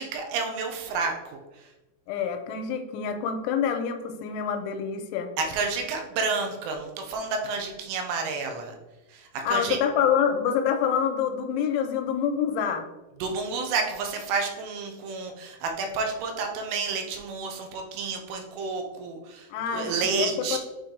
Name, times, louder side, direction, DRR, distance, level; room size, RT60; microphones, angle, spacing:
voice 1, 0.0-1.7 5.4-8.8 9.1-9.8 13.2-20.6, right 4 dB, 85° right, 3 dB, 3.3 m, -30 dB
voice 2, 2.1-5.3 9.5-12.9 19.5-20.6, left 7 dB, 90° left, 6 dB, 3.0 m, -26 dB
8.8 x 3.8 x 3.3 m, 1.0 s
omnidirectional pair, 5.4 m